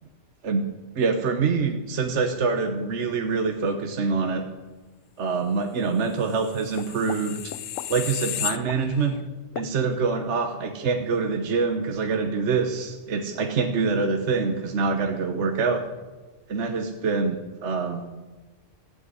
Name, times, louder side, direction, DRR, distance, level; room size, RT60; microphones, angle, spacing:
voice 1, 0.9-4.5 5.2-7.5 7.9-9.2 9.5-15.9 16.5-18.0, right 4 dB, 65° right, 5 dB, 1.3 m, -25 dB
sound 1, 6.3-9.2 9.6-9.7, left 12 dB, 80° left, 1.0 m, -33 dB
14.5 x 7.9 x 9.5 m, 1.2 s
omnidirectional pair, 1.3 m